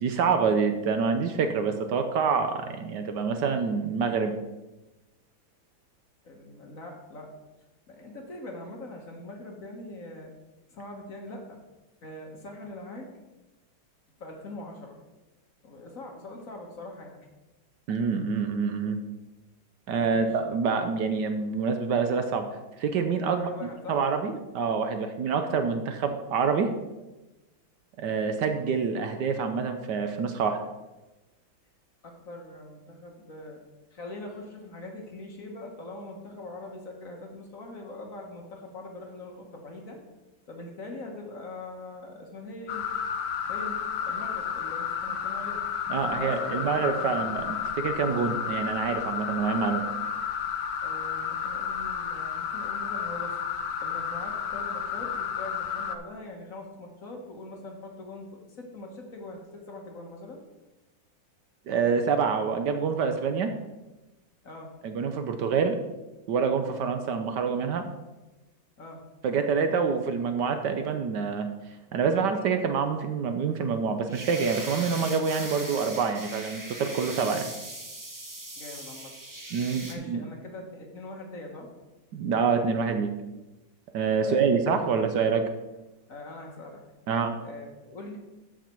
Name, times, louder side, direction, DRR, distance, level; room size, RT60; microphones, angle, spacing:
voice 1, 0.0-4.3 17.9-19.0 19.9-22.5 22.8-23.5 23.9-26.7 28.0-30.6 45.9-49.8 61.7-63.5 64.8-65.8 66.3-67.8 69.2-71.5 71.9-77.5 79.5-80.2 82.1-83.1 83.9-85.4 87.1-87.4, right 5 dB, 70° right, 7 dB, 1.2 m, -26 dB
voice 2, 6.2-7.3 7.9-10.3 10.7-11.6 12.0-13.1 14.2-15.0 15.6-17.3 20.0-20.3 23.3-24.0 32.0-33.6 33.9-40.0 40.5-42.8 43.5-45.6 46.0-47.2 50.8-53.4 53.8-60.4 64.4-64.7 68.8-69.0 78.6-79.1 79.9-81.7 84.2-85.0 86.1-86.8 87.4-88.2, left 2 dB, 45° left, 1 dB, 1.6 m, -42 dB
sound 1, 42.7-56.0, left 7 dB, 70° left, 1.2 m, -32 dB
sound 2, 74.1-79.9, right 1 dB, 25° right, 0.4 m, -40 dB
13.5 x 4.9 x 4.4 m, 1.1 s
omnidirectional pair, 2.1 m